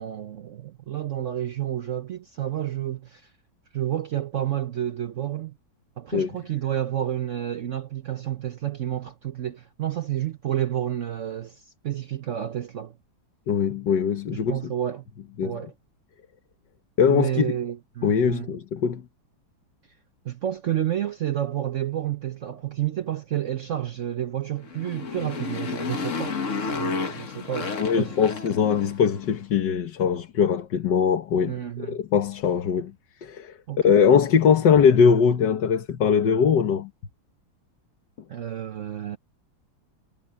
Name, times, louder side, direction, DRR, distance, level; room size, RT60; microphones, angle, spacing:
voice 1, 0.0-3.3 3.7-5.5 6.0-12.9 14.5-15.1 15.4-15.7 17.1-18.5 20.2-26.4 26.7-28.3 31.5-32.0 33.7-33.8 38.3-39.2, right 11 dB, 65° right, 0.7 m, -30 dB
voice 2, 13.5-14.6 15.4-15.6 17.0-17.5 18.0-19.0 27.8-31.5 31.9-32.9 33.2-33.5 33.8-36.9, left 7 dB, 60° left, 1.8 m, -21 dB
Motorcycle, 24.6-29.2, left 4 dB, 40° left, 1.5 m, -31 dB
omnidirectional pair, 2.2 m